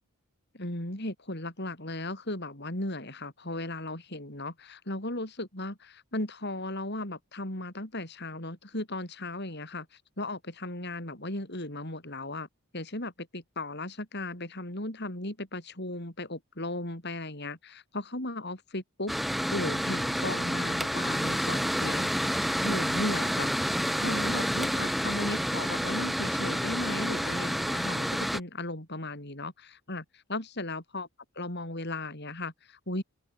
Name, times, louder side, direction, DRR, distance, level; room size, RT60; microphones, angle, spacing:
voice 1, 0.5-9.9 10.2-12.5 12.7-31.1 31.4-33.0, left 2 dB, 50° left, 5.0 m, -36 dB
Mechanical fan, 19.1-28.4, equal, ahead, 2.7 m, -29 dB
open air
head